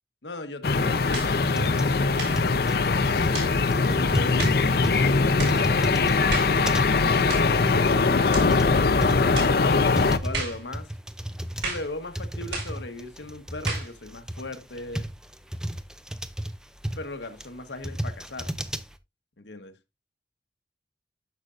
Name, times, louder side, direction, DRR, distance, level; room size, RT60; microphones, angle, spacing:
voice 1, 0.2-3.4 4.0-4.4 4.8-6.5 7.2-8.7 10.2-10.9 11.6-15.0 17.0-18.5 19.4-19.7, left 2 dB, 85° left, 1.2 m, -38 dB
sound 1, 0.6-10.2, left 4 dB, 60° left, 0.6 m, -22 dB
sound 2, 1.1-1.4 2.1-2.4 3.3-3.6 4.4-4.6 5.4-5.6 6.3-6.6 7.3-7.5 8.3-8.5 9.3-9.6 10.3-10.6 11.6-11.9 12.5-12.8 13.7-13.9, right 3 dB, 75° right, 6.1 m, -33 dB
sound 3, 1.4-19.0, right 1 dB, 5° right, 0.5 m, -34 dB
10.5 x 6.7 x 2.5 m
head